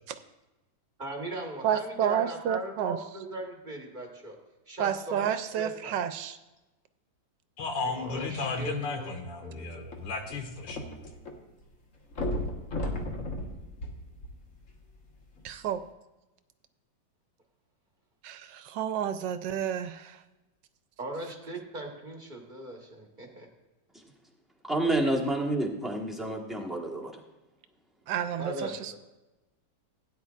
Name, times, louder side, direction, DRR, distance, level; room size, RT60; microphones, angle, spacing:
voice 1, 1.0-4.4 4.7-5.9 7.8-9.1 9.4-9.8 21.0-23.5 28.4-29.0, right 1 dB, 30° right, 1 dB, 1.4 m, -39 dB
voice 2, 1.6-3.0 4.8-6.4 15.4-15.8 18.2-20.2 28.1-29.0, right 9 dB, 80° right, 10 dB, 1.2 m, -30 dB
voice 3, 7.6-11.0, left 4 dB, 85° left, 3 dB, 2.1 m, -34 dB
sound 1, 9.8-11.3 11.6-11.7 12.1-14.7 15.4-15.5, left 1 dB, 45° left, 1.6 m, -34 dB
voice 4, 24.6-27.2, right 1 dB, ahead, 0 dB, 1.0 m, -29 dB
17.0 x 9.5 x 2.4 m, 1.0 s
omnidirectional pair, 2.0 m